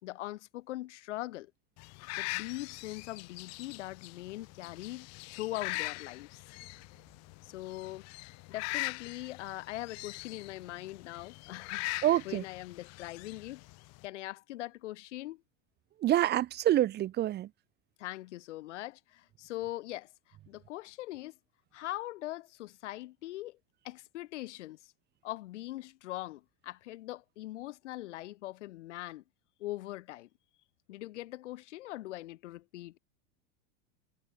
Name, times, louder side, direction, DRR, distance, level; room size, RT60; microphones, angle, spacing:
voice 1, 0.0-1.5 2.2-6.4 7.4-8.1 8.5-13.6 14.0-15.4 18.0-21.4 21.7-23.6 23.8-24.9 25.2-29.2 29.6-30.3 30.9-33.0, left 16 dB, 90° left, 4.0 m, -41 dB
sound 1, 1.8-14.1, left 24 dB, 50° left, 6.4 m, -42 dB
voice 2, 12.0-12.4 16.0-17.5, right 13 dB, 30° right, 1.5 m, -27 dB
supercardioid pair, 155°, 34 cm